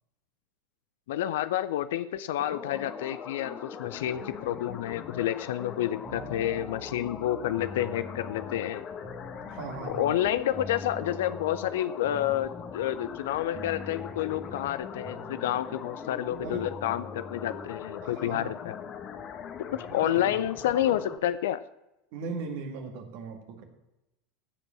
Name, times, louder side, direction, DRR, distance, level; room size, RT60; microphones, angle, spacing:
voice 1, 1.1-8.8 9.9-18.8 19.7-21.6, left 12 dB, 70° left, 14 dB, 0.4 m, -29 dB
sound 1, 2.4-21.2, left 7 dB, 40° left, 1.3 m, -41 dB
sound 2, 6.0-17.9, equal, 25° right, 1.6 m, -46 dB
voice 2, 9.5-10.1 16.4-16.7 18.0-18.5 19.9-20.3 22.1-23.6, right 4 dB, 60° right, 4 dB, 2.0 m, -38 dB
15.0 x 5.3 x 7.1 m, 0.93 s
hypercardioid pair, 80°, 0 cm